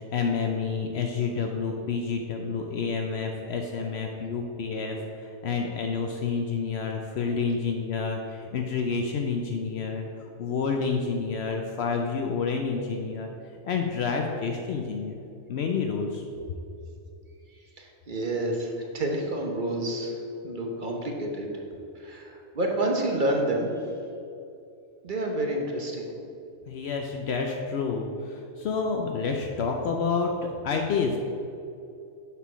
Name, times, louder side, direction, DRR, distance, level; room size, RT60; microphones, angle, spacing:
voice 1, 0.0-10.1 10.4-13.3 13.6-15.1 15.5-16.2 26.7-31.2, left 5 dB, 65° left, 2 dB, 0.8 m, -29 dB
voice 2, 17.5-21.5 21.9-23.7 25.0-26.1, right 1 dB, 45° right, 1 dB, 1.0 m, -29 dB
6.8 x 4.6 x 6.1 m, 2.6 s
omnidirectional pair, 1.2 m